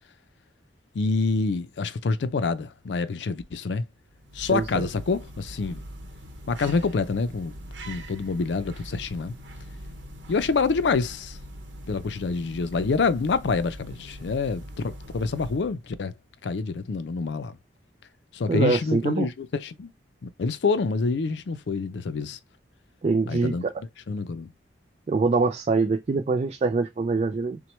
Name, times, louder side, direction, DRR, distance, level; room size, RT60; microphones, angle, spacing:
voice 1, 0.9-3.8 4.3-5.8 6.5-7.5 7.9-9.4 10.3-11.4 11.9-16.1 16.4-17.6 18.3-19.9 20.2-22.4 23.3-23.6 24.1-24.5, left 4 dB, 75° left, 0.5 m, -27 dB
sound 1, 4.0-15.9, equal, 85° right, 0.8 m, -42 dB
voice 2, 4.5-4.9 18.5-19.3 23.0-23.7 25.1-27.6, right 4 dB, 35° right, 0.3 m, -24 dB
5.9 x 2.2 x 3.1 m
head